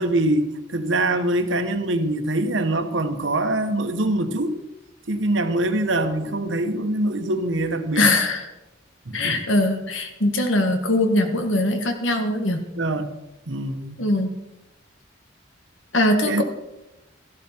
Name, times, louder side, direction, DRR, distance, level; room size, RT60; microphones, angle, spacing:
voice 1, 0.0-4.6 5.1-8.1 9.1-9.4 12.8-13.1 13.5-14.0 16.3-16.4, right 1 dB, 75° right, 8 dB, 1.1 m, -24 dB
voice 2, 7.9-8.5 9.1-12.6 14.0-14.3 15.9-16.4, left 1 dB, 80° left, 6 dB, 1.7 m, -21 dB
14.0 x 12.0 x 4.5 m, 0.96 s
head